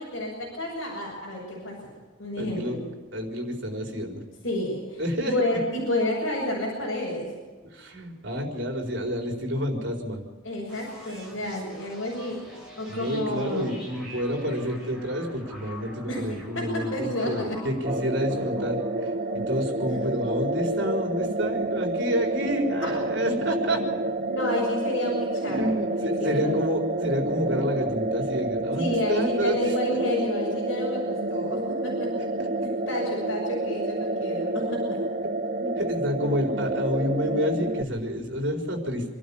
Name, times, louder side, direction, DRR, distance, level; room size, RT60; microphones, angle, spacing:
voice 1, 0.0-1.9 2.2-2.9 4.4-7.3 10.4-13.7 16.1-16.2 16.5-17.6 22.8-22.9 24.3-26.6 28.7-32.5 32.9-35.0, left 1 dB, 65° left, -5 dB, 6.5 m, -30 dB
voice 2, 2.4-2.8 3.1-4.2 5.0-5.3 7.6-10.2 12.9-23.8 25.4-29.8 35.6-39.0, equal, 60° right, 2 dB, 4.4 m, -29 dB
sound 1, 10.7-24.3, equal, 5° right, 6.8 m, -46 dB
sound 2, 17.8-37.8, right 2 dB, 40° right, 0.8 m, -29 dB
26.5 x 12.5 x 8.7 m, 1.4 s
head